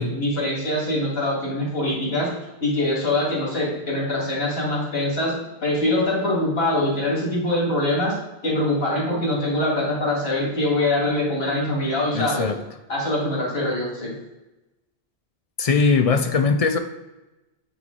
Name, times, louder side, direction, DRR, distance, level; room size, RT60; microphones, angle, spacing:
voice 1, 0.0-2.3 2.6-5.3 5.6-8.1 8.4-12.5 12.9-14.1, left 1 dB, 70° left, -4 dB, 2.3 m, -23 dB
voice 2, 12.1-12.6 15.6-16.8, left 4 dB, 55° left, 8 dB, 0.4 m, -20 dB
8.8 x 3.1 x 3.8 m, 1.0 s
omnidirectional pair, 1.1 m